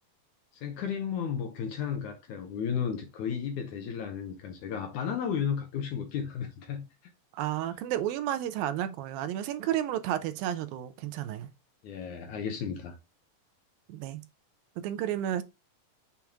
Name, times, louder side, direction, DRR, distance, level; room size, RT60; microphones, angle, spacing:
voice 1, 0.5-6.8 11.8-13.0, left 7 dB, 70° left, 2.0 m, -33 dB
voice 2, 7.3-11.5 13.9-14.2 14.8-15.4, right 11 dB, 80° right, 2.4 m, -32 dB
7.1 x 4.6 x 3.5 m
omnidirectional pair, 4.2 m